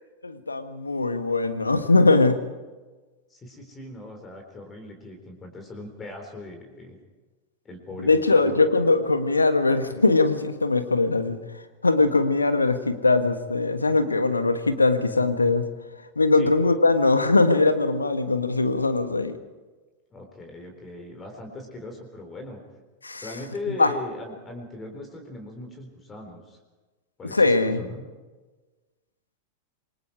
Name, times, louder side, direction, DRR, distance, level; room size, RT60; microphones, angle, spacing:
voice 1, 0.2-2.4 8.0-11.4 11.8-15.6 16.2-19.4 23.0-23.2 23.8-23.9 27.3-27.8, left 3 dB, 80° left, 10 dB, 1.6 m, -21 dB
voice 2, 3.3-7.0 7.6-8.5 16.3-16.5 20.1-22.6 23.2-26.6 27.2-28.1, left 2 dB, 20° left, 4 dB, 4.0 m, -39 dB
27.0 x 22.0 x 4.9 m, 1.3 s
figure-of-eight pair, 90°, 0 cm